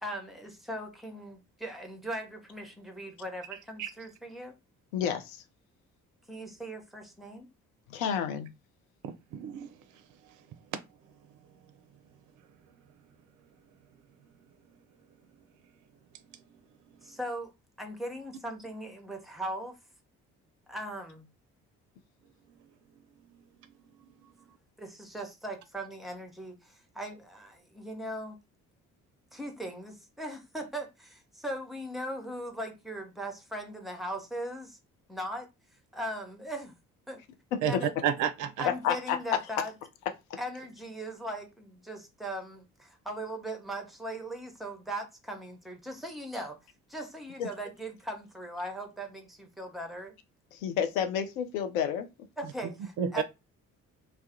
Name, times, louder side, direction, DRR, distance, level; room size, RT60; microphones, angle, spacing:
voice 1, 0.0-4.5 6.3-7.5 17.0-17.5 17.8-19.7 20.7-21.2 24.8-28.4 29.3-34.8 35.1-35.5 35.9-36.7 37.1-37.2 37.6-37.9 38.6-39.7 40.4-46.6 46.9-50.1 52.4-53.2, right 1 dB, ahead, 0.6 m, -39 dB
voice 2, 4.9-5.4 7.9-8.5 37.5-37.8 38.6-39.2 47.4-47.5 50.5-52.1, left 8 dB, 75° left, 0.5 m, -30 dB
voice 3, 9.0-9.7 16.3-16.4 16.9-17.0 23.3-23.4 37.6-37.7 38.0-38.7 53.0-53.2, right 9 dB, 45° right, 0.4 m, -31 dB
2.2 x 2.1 x 2.7 m
figure-of-eight pair, 45°, 43 cm